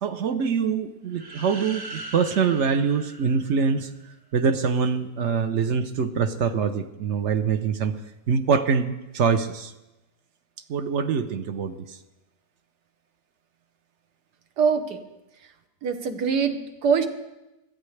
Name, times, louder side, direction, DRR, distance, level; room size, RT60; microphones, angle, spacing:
voice 1, 0.0-3.9 4.3-7.9 8.3-9.7 10.7-12.0, right 6 dB, 55° right, 10 dB, 0.9 m, -24 dB
sound 1, 1.1-4.0, right 2 dB, 20° right, 0.7 m, -41 dB
voice 2, 14.6-15.0 15.4-15.5 15.8-17.1, right 6 dB, 85° right, 8 dB, 1.6 m, -23 dB
21.0 x 14.0 x 3.3 m, 0.99 s
omnidirectional pair, 1.7 m